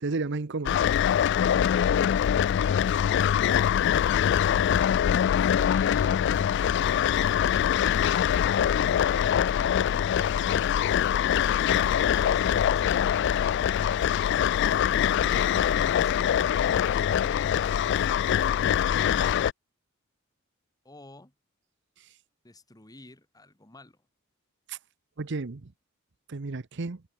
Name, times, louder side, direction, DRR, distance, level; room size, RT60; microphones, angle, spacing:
voice 1, 0.0-0.8 24.7-24.8 25.2-25.7 26.3-27.0, right 3 dB, 60° right, 0.8 m, -32 dB
sound 1, 0.7-19.5, left 9 dB, 60° left, 0.3 m, -23 dB
voice 2, 5.2-6.2 20.8-21.3 22.4-24.0, left 2 dB, 20° left, 1.9 m, -52 dB
head